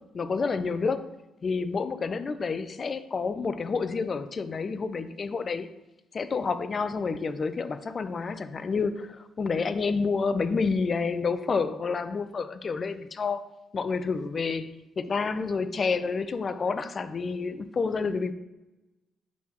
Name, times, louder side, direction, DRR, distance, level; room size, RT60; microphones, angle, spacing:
voice 1, 0.1-1.0 1.4-5.7 6.1-13.4 13.7-18.3, left 4 dB, 45° left, 0.5 m, -29 dB
10.0 x 3.7 x 3.0 m
supercardioid pair, 55°, 0 cm